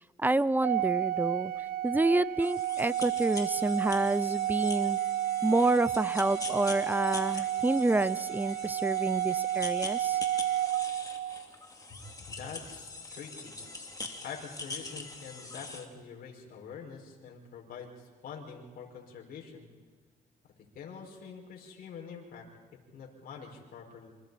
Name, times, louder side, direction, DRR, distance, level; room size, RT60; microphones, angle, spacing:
voice 1, 0.2-1.5 1.8-5.0 5.4-10.2, right 2 dB, 10° right, 18 dB, 0.6 m, -28 dB
Organ, 0.6-11.5, right 13 dB, 65° right, 0.5 m, -31 dB
sound 1, 2.4-15.9, left 3 dB, 20° left, 2.7 m, -43 dB
voice 2, 11.9-13.7 14.2-19.7 20.7-22.5 22.7-24.1, left 6 dB, 65° left, -1 dB, 5.5 m, -45 dB
28.0 x 26.0 x 4.2 m, 1.4 s
cardioid pair, 90°, 17 cm